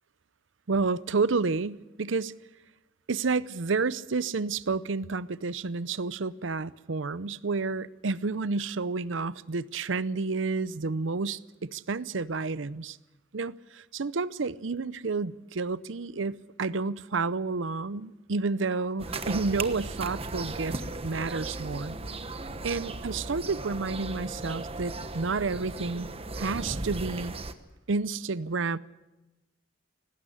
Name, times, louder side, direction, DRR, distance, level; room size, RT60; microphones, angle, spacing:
voice 1, 0.7-2.3 3.1-13.0 13.3-22.0 22.6-26.1 26.4-27.3 27.9-28.8, right 4 dB, 75° right, 0.7 m, -30 dB
sound 1, 19.0-27.5, right 2 dB, 30° right, 1.2 m, -36 dB
19.0 x 16.5 x 9.9 m
head